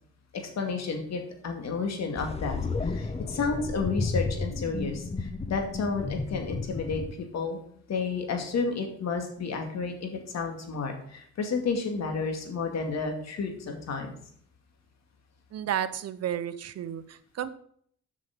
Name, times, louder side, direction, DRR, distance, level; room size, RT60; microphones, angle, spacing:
voice 1, 0.3-2.6 2.8-7.6 7.9-14.2, left 4 dB, 60° left, 3 dB, 2.3 m, -31 dB
sound 1, 2.2-7.1, left 3 dB, 20° left, 0.7 m, -32 dB
voice 2, 15.5-17.5, right 10 dB, 55° right, 13 dB, 0.8 m, -32 dB
8.2 x 6.2 x 6.0 m, 0.64 s
cardioid pair, 90°, 30 cm